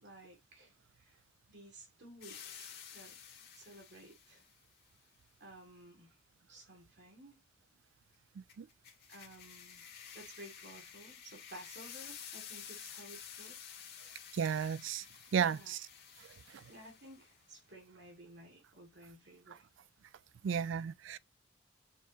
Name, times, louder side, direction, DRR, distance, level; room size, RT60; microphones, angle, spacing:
voice 1, 0.0-1.2 1.5-3.2 3.5-4.4 5.4-6.2 6.5-7.4 9.1-9.8 10.1-13.6 15.3-15.8 16.7-19.6, right 1 dB, 65° right, 2.4 m, -55 dB
sound 1, 2.2-4.5 8.5-17.4, left 8 dB, 60° left, 1.8 m, -51 dB
voice 2, 14.3-15.0 15.3-15.8 20.4-21.2, right 7 dB, 80° right, 0.4 m, -33 dB
7.1 x 4.6 x 3.0 m
head